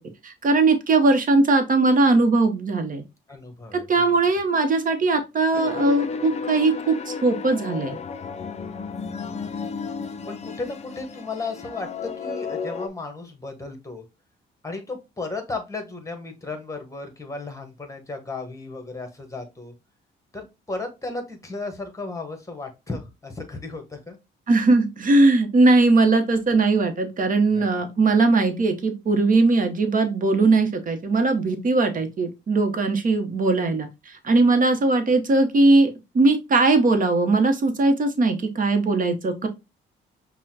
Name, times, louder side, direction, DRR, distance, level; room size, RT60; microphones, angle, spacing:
voice 1, 0.2-3.0 3.7-8.0 24.5-39.5, right 3 dB, 45° right, 0.9 m, -20 dB
voice 2, 3.3-4.1 9.3-9.5 10.3-14.0 14.6-19.7 20.3-24.2 27.5-27.8, left 3 dB, 15° left, 1.2 m, -35 dB
sound 1, 5.5-12.9, left 5 dB, 35° left, 0.5 m, -33 dB
5.5 x 2.2 x 2.8 m
cardioid pair, 90°, 20 cm